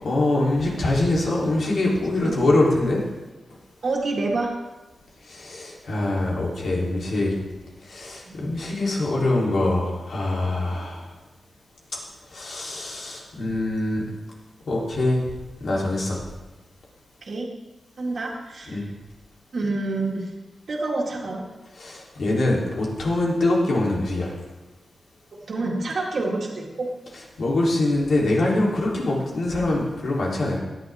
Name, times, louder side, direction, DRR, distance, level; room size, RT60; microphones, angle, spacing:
voice 1, 0.0-3.0 5.2-7.3 7.8-11.0 12.3-14.0 14.7-15.2 15.6-16.2 18.7-18.9 21.8-24.3 27.4-30.6, left 2 dB, 70° left, -3 dB, 3.5 m, -23 dB
voice 2, 3.8-4.5 8.3-8.4 17.2-17.5 18.0-18.8 19.5-20.3 20.7-21.4 25.5-26.9, right 2 dB, 60° right, -4 dB, 2.2 m, -27 dB
17.0 x 11.0 x 3.6 m, 1.1 s
wide cardioid pair, 110°, 0 cm